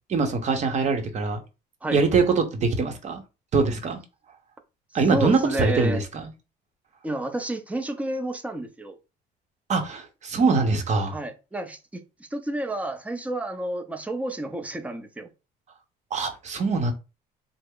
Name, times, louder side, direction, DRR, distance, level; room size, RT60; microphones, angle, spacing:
voice 1, 0.1-1.4 1.9-3.2 3.5-4.0 4.9-6.3 9.7-11.1 16.1-16.9, right 4 dB, 45° right, 0.8 m, -23 dB
voice 2, 5.1-6.0 7.0-9.0 11.1-15.3, right 1 dB, 10° right, 0.5 m, -30 dB
3.2 x 2.0 x 3.6 m
cardioid pair, 110°, 17 cm